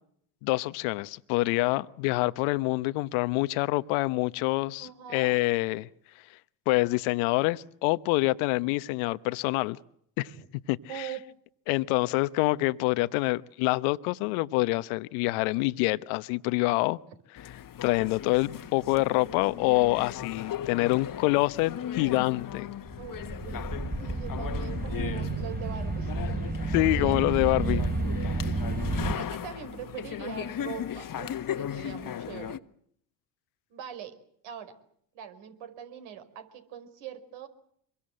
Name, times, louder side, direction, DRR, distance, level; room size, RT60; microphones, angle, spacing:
voice 1, 0.4-5.9 6.7-9.8 10.2-10.3 10.7-11.1 11.7-17.0 17.8-22.7 26.7-27.8 28.1-28.4, left 21 dB, 70° left, 1.1 m, -26 dB
voice 2, 4.8-5.3 10.3-10.5 10.9-11.2 23.0-23.7 23.9-26.4 26.7-27.5 28.9-32.6 33.7-34.1 34.4-34.7 35.1-37.5, right 9 dB, 65° right, 5.1 m, -42 dB
sound 1, 17.4-32.6, left 10 dB, 40° left, 1.5 m, -37 dB
sound 2, 22.9-29.1, right 3 dB, 20° right, 3.4 m, -31 dB
26.5 x 23.0 x 7.8 m
hypercardioid pair, 65°, 50 cm